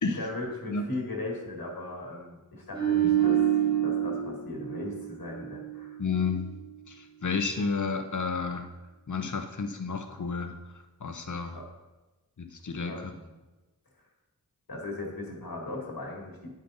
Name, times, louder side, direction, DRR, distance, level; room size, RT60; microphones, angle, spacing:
voice 1, 0.0-6.0 11.5-11.6 12.9-13.3 14.7-16.5, left 2 dB, 75° left, -1 dB, 1.7 m, -38 dB
sound 1, 2.7-6.0 6.3-6.5, right 10 dB, 15° right, 1.8 m, -27 dB
voice 2, 6.0-6.5 6.9-8.7 9.1-10.6 11.0-11.6 12.4-13.1, left 4 dB, 55° left, 7 dB, 0.8 m, -31 dB
9.4 x 5.2 x 4.0 m, 1.1 s
wide cardioid pair, 65°, 36 cm